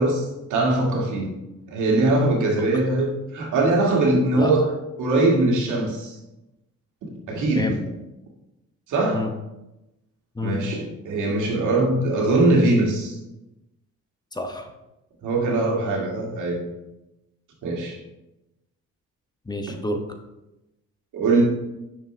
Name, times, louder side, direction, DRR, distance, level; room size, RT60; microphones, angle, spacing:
voice 1, 0.0-1.3 1.7-6.2 7.3-7.7 8.9-9.3 10.4-13.2 15.2-16.6 17.6-18.0 21.1-21.4, right 2 dB, 80° right, 0 dB, 2.1 m, -21 dB
voice 2, 7.3-7.8 9.1-9.3 10.4-10.6 14.3-14.7 19.5-20.1, left 2 dB, 15° left, 5 dB, 1.0 m, -29 dB
9.4 x 6.6 x 3.3 m, 0.95 s
cardioid pair, 90°, 30 cm